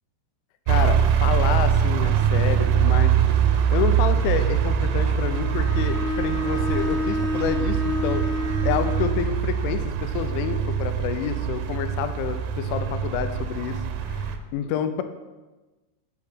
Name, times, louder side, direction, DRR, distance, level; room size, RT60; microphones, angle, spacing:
voice 1, 0.7-3.2 3.7-8.2 8.6-13.8 14.1-15.0, left 9 dB, 85° left, 9 dB, 2.9 m, -28 dB
sound 1, 0.7-14.4, right 8 dB, 85° right, 2.9 m, -23 dB
Bowed string instrument, 5.2-9.1, left 1 dB, 10° right, 1.5 m, -29 dB
7.8 x 7.2 x 4.5 m, 1.2 s
omnidirectional pair, 5.6 m